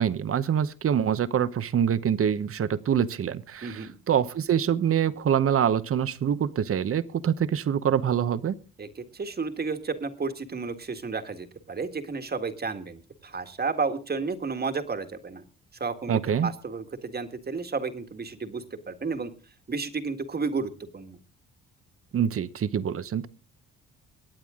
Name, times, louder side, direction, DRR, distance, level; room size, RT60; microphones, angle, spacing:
voice 1, 0.0-8.5 16.1-16.5 22.1-23.3, right 8 dB, 45° right, 14 dB, 1.0 m, -25 dB
voice 2, 3.6-4.0 8.8-15.4 15.8-19.3 19.7-21.2, right 4 dB, 30° right, 8 dB, 1.8 m, -32 dB
24.0 x 9.1 x 3.7 m, 0.35 s
cardioid pair, 90°, 30 cm